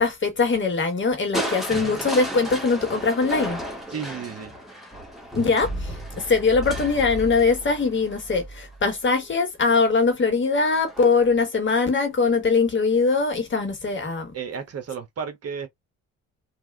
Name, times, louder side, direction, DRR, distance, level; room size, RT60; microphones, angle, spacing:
voice 1, 0.0-3.6 5.4-14.3, left 4 dB, 40° left, 1.3 m, -22 dB
Crushing, 1.3-9.3 10.8-11.4 11.8-11.9, equal, ahead, 1.4 m, -33 dB
voice 2, 3.9-4.5 14.3-15.7, right 6 dB, 55° right, 1.2 m, -33 dB
3.4 x 2.5 x 2.3 m
cardioid pair, 90°, 30 cm